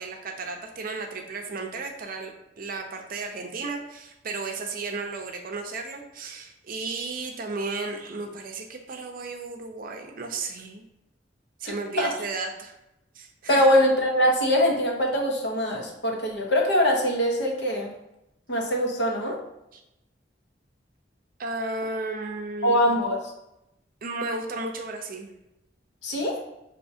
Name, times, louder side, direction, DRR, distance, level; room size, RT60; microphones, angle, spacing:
voice 1, 0.0-10.8 11.6-12.8 13.1-13.7 19.7-19.8 21.4-22.8 24.0-25.3, right 3 dB, 50° right, 4 dB, 0.6 m, -34 dB
voice 2, 11.6-12.1 13.5-17.9 18.5-19.4 22.6-23.2 26.0-26.4, equal, 65° left, 0 dB, 0.9 m, -23 dB
5.9 x 2.8 x 2.7 m, 0.89 s
head